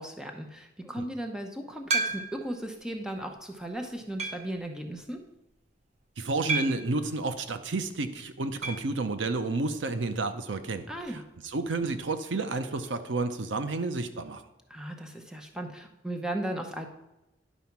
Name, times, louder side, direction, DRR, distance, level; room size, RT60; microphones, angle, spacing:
voice 1, 0.0-5.2 10.9-11.2 14.7-16.9, right 1 dB, 5° right, 3 dB, 0.7 m, -36 dB
sound 1, 1.9-2.6 3.2-3.3 4.2-4.6 6.5-7.0 8.6-8.9 9.2-9.3 9.5-9.6 11.6-11.7, right 3 dB, 35° right, 0.8 m, -31 dB
voice 2, 6.2-10.9 11.4-14.4, right 3 dB, 90° right, 9 dB, 0.7 m, -30 dB
10.5 x 4.1 x 5.9 m, 0.96 s
head